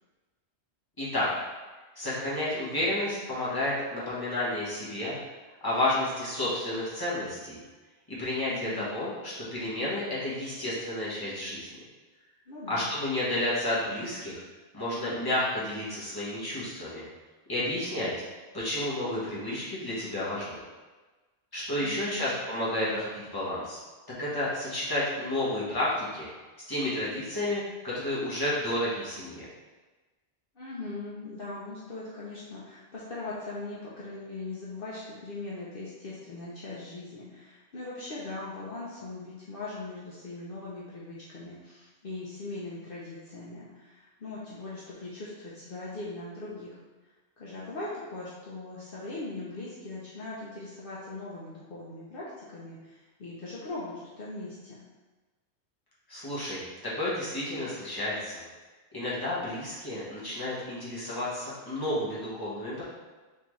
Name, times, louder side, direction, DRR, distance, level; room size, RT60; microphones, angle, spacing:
voice 1, 1.0-1.3 2.0-5.2 5.6-7.6 8.1-11.7 12.7-14.4 14.7-17.1 17.5-18.1 18.5-20.6 21.5-23.8 24.2-26.3 26.7-29.4 56.1-58.4 58.9-62.8, left 1 dB, 20° left, -8 dB, 1.3 m, -31 dB
voice 2, 8.5-8.8 12.5-12.9 21.8-22.3 30.5-46.8 47.4-54.8, left 2 dB, 60° left, -7 dB, 0.9 m, -40 dB
4.3 x 3.7 x 3.1 m, 1.3 s
omnidirectional pair, 1.1 m